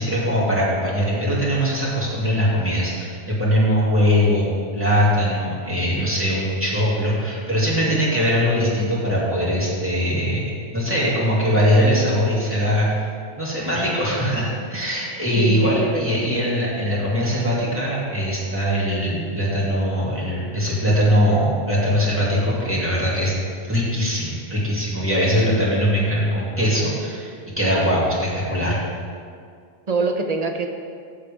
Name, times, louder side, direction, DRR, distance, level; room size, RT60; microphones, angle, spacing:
voice 1, 0.0-4.5 4.7-10.4 10.7-12.9 13.4-23.3 23.7-28.7, equal, 10° right, -8 dB, 2.5 m, -21 dB
voice 2, 15.4-16.5 29.9-30.7, right 3 dB, 40° right, 4 dB, 0.8 m, -25 dB
15.0 x 6.6 x 3.6 m, 2.2 s
omnidirectional pair, 1.1 m